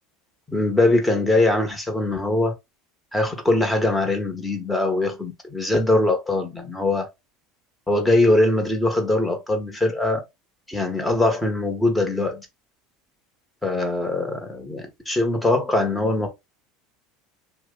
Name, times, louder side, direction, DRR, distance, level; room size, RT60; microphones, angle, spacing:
voice 1, 0.5-2.5 3.1-7.1 7.9-10.2 10.7-12.5 13.6-16.3, left 2 dB, 10° left, 1.0 m, -22 dB
2.9 x 2.1 x 3.5 m
hypercardioid pair, 90°, 0 cm